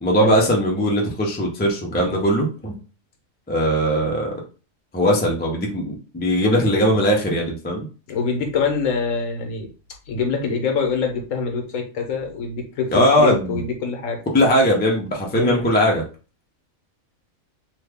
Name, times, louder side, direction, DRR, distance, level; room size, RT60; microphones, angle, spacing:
voice 1, 0.0-2.7 3.5-4.3 4.9-7.9 12.9-13.6 14.3-16.0, equal, 15° left, -1 dB, 0.4 m, -19 dB
voice 2, 8.1-9.7 10.1-14.2 15.3-15.6, left 5 dB, 75° left, 3 dB, 1.2 m, -24 dB
3.1 x 2.3 x 3.4 m, 0.34 s
omnidirectional pair, 1.4 m